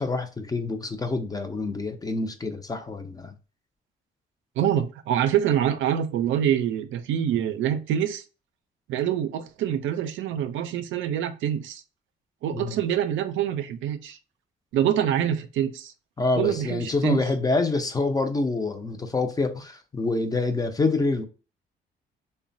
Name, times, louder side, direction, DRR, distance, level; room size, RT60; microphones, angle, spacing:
voice 1, 0.0-3.3 12.5-12.8 16.2-21.3, left 3 dB, 20° left, 0.4 m, -26 dB
voice 2, 4.6-8.2 8.9-11.8 12.4-14.2 14.7-15.9 16.4-17.2, right 10 dB, 80° right, 0.4 m, -25 dB
3.0 x 2.1 x 2.6 m
cardioid pair, 90°, 20 cm